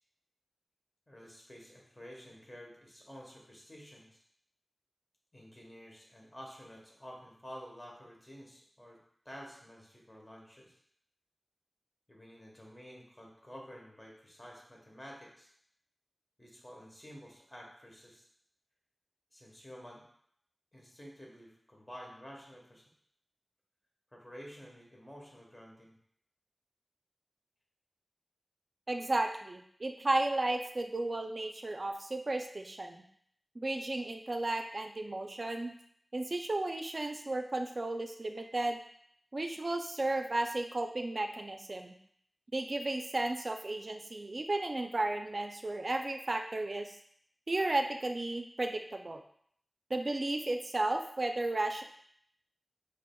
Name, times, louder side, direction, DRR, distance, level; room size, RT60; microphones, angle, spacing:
voice 1, 1.1-4.2 5.3-9.0 9.2-10.8 12.1-15.5 16.4-18.2 19.3-20.0 20.7-22.9 24.1-25.9, equal, 25° left, -2 dB, 1.2 m, -51 dB
voice 2, 28.9-33.0 33.6-35.7 36.1-38.8 39.3-41.9 42.5-47.0 47.5-49.2 49.9-51.8, right 2 dB, 55° right, 5 dB, 0.4 m, -34 dB
4.9 x 3.2 x 2.3 m, 0.65 s
wide cardioid pair, 55°, 0 cm